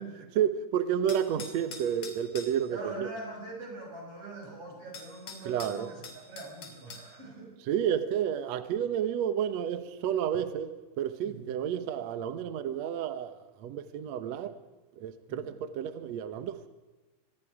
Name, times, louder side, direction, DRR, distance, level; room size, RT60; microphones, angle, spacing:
voice 1, 0.3-3.1 5.4-5.9 7.7-14.5 15.0-16.7, right 9 dB, 75° right, 1.6 m, -31 dB
sound 1, 1.1-2.6 4.4-4.5 4.9-7.1, left 4 dB, 45° left, 3.5 m, -44 dB
voice 2, 2.7-7.5 11.2-11.4 15.3-15.5, right 2 dB, 35° right, 7.6 m, -43 dB
26.0 x 21.0 x 4.9 m
omnidirectional pair, 4.7 m